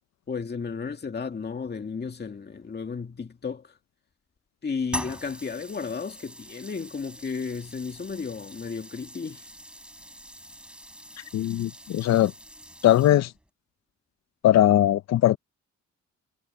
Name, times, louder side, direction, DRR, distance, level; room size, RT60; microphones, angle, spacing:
voice 1, 0.3-3.7 4.6-9.4, left 5 dB, 35° left, 2.3 m, -33 dB
sound 1, 4.9-13.5, equal, 5° right, 7.0 m, -42 dB
voice 2, 11.3-12.3 12.8-13.3 14.4-15.4, left 13 dB, 65° left, 0.6 m, -20 dB
cardioid pair, 95°, 29 cm